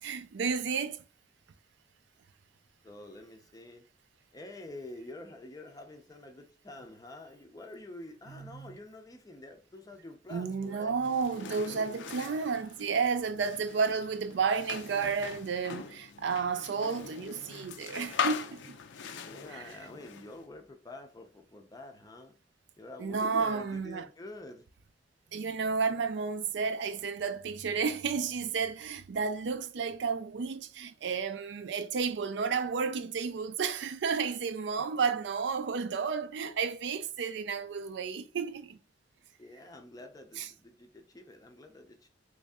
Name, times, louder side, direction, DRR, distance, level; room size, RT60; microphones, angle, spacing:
voice 1, 0.0-1.0 8.3-8.8 10.3-18.8 19.3-19.8 23.0-24.1 25.3-38.8 40.3-40.5, right 5 dB, 65° right, 0.4 m, -32 dB
voice 2, 2.8-3.9 4.3-11.0 19.2-22.3 22.8-24.6 34.8-34.9 39.4-42.1, left 2 dB, 20° left, 0.5 m, -47 dB
sound 1, 11.0-20.5, left 7 dB, 75° left, 0.4 m, -41 dB
3.0 x 2.6 x 3.5 m
head